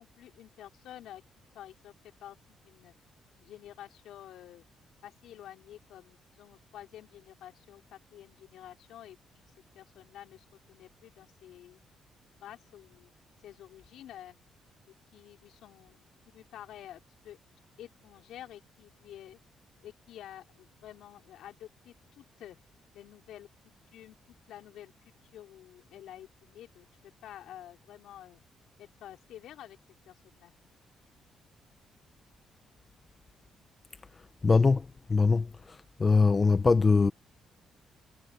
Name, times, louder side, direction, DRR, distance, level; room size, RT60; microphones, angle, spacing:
voice 1, 0.0-2.4 2.6-2.9 3.4-4.6 5.0-9.4 9.7-11.8 12.4-13.1 13.4-14.4 14.9-16.0 16.3-17.4 17.8-19.4 19.8-22.6 22.9-23.5 23.9-24.2 24.5-28.4 28.8-29.8 30.1-30.5, left 12 dB, 80° left, 4.4 m, -50 dB
voice 2, 34.4-34.8 35.1-35.5 36.0-37.1, left 4 dB, 30° left, 1.2 m, -22 dB
cardioid pair, 90°, 0 cm